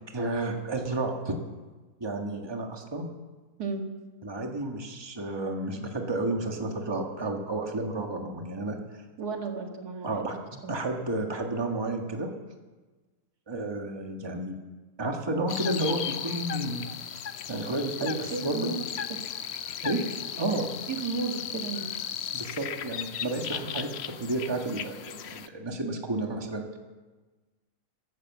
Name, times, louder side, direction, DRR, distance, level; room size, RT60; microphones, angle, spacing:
voice 1, 0.1-1.4 2.0-3.0 4.2-8.8 10.0-12.3 13.5-14.5 15.0-16.9 17.5-18.7 19.8-20.0 20.4-20.7 22.3-23.9 24.2-26.7, right 2 dB, 15° right, 3 dB, 1.5 m, -31 dB
voice 2, 9.2-10.1 10.6-10.7 18.3-18.8 20.9-21.9, right 4 dB, 80° right, 3 dB, 2.3 m, -33 dB
sound 1, 15.5-25.5, left 8 dB, 55° left, 0.8 m, -36 dB
15.0 x 13.0 x 7.4 m, 1.3 s
omnidirectional pair, 1.6 m